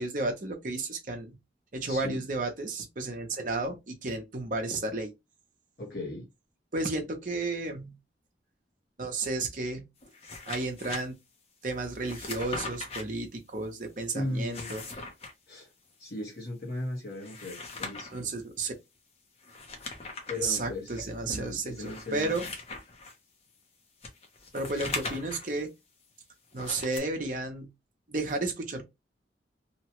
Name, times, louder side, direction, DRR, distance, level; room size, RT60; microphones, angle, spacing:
voice 1, 0.0-1.4 1.7-5.1 6.7-7.9 9.0-9.8 10.5-11.1 11.6-14.9 18.1-18.8 20.3-22.4 24.5-25.7 26.5-27.7 28.1-28.8, right 2 dB, 45° right, 0.7 m, -32 dB
voice 2, 1.9-2.2 5.8-6.3 14.1-14.7 15.5-15.7 16.0-18.3 20.3-22.3, left 1 dB, 55° left, 1.1 m, -37 dB
sound 1, 10.0-11.0 12.0-13.0 14.3-15.3 17.1-18.2 19.4-20.4 21.0-21.1 21.8-23.1 24.0-25.5 26.5-27.0, left 3 dB, 35° left, 0.7 m, -39 dB
2.9 x 2.2 x 2.9 m
head